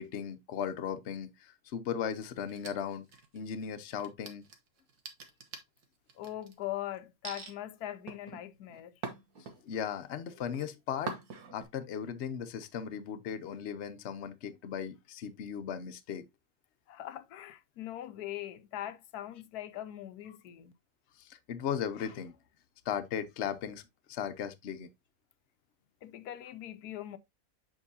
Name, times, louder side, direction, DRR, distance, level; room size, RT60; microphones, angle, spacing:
voice 1, 0.0-3.1 3.3-4.4 9.6-11.1 11.5-16.3 21.2-22.4 22.9-23.8 24.1-24.9, left 8 dB, 55° left, 0.9 m, -37 dB
sound 1, 2.5-3.5 3.9-6.5 7.2-7.5 8.1-9.9 10.3-10.7 11.1-11.6, right 4 dB, 80° right, 1.7 m, -44 dB
voice 2, 6.2-8.9 16.9-20.7 26.0-27.2, left 13 dB, 85° left, 1.2 m, -41 dB
7.3 x 5.4 x 2.7 m
omnidirectional pair, 1.6 m